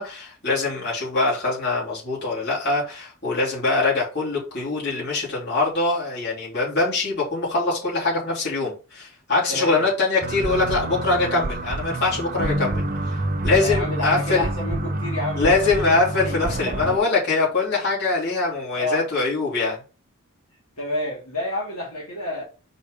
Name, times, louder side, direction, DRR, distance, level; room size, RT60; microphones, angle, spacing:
voice 1, 0.0-12.8 13.4-14.4 15.4-19.8, left 3 dB, 50° left, 3.3 m, -23 dB
voice 2, 9.5-9.8 13.6-15.9 16.2-16.4 16.6-16.9 18.7-19.0 20.8-22.4, left 1 dB, 80° left, 2.6 m, -29 dB
sound 1, 10.2-17.0, right 1 dB, 40° right, 0.7 m, -27 dB
5.0 x 4.2 x 5.0 m
head